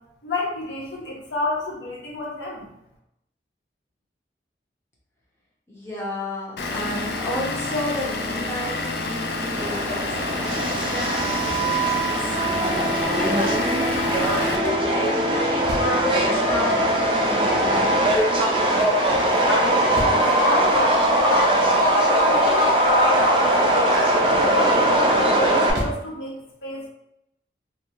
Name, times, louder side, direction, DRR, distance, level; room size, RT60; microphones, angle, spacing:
voice 1, 0.2-2.7 19.2-21.6 21.9-24.0 24.5-26.3 26.6-26.9, left 1 dB, 85° left, -3 dB, 0.9 m, -28 dB
voice 2, 5.7-12.4 13.1-18.0, left 1 dB, 15° left, -5 dB, 0.7 m, -32 dB
Vehicle / Engine, 6.6-14.6, left 2 dB, 65° left, 0.4 m, -28 dB
Subway metro underground, 9.6-25.7, right 1 dB, 30° right, 0.3 m, -20 dB
sound 1, 13.9-16.1 19.0-20.3 24.2-24.8 25.3-26.1, right 1 dB, 75° right, 0.7 m, -34 dB
2.5 x 2.1 x 2.8 m, 0.82 s
head